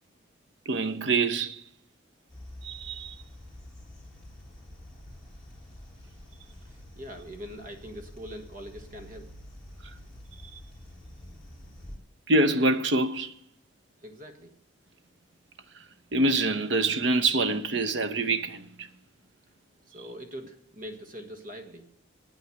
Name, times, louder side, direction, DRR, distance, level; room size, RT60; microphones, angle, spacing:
voice 1, 0.7-1.6 2.6-3.2 12.3-13.4 16.1-18.9, right 2 dB, 65° right, 0.8 m, -25 dB
sound 1, 2.3-12.0, left 1 dB, 5° left, 3.0 m, -47 dB
voice 2, 7.0-9.3 14.0-14.5 19.9-21.9, equal, 45° right, 1.5 m, -42 dB
8.8 x 8.7 x 7.9 m
head